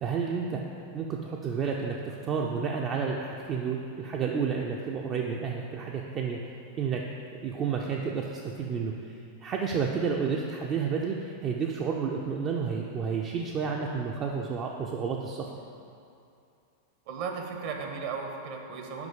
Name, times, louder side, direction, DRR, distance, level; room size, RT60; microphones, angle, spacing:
voice 1, 0.0-0.6 0.9-6.4 6.8-7.0 7.4-8.9 9.4-15.5, right 6 dB, 30° right, -1 dB, 0.5 m, -30 dB
voice 2, 17.1-19.1, right 5 dB, 45° right, 3 dB, 1.0 m, -35 dB
6.0 x 5.5 x 6.8 m, 2.6 s
figure-of-eight pair, 90°, 0 cm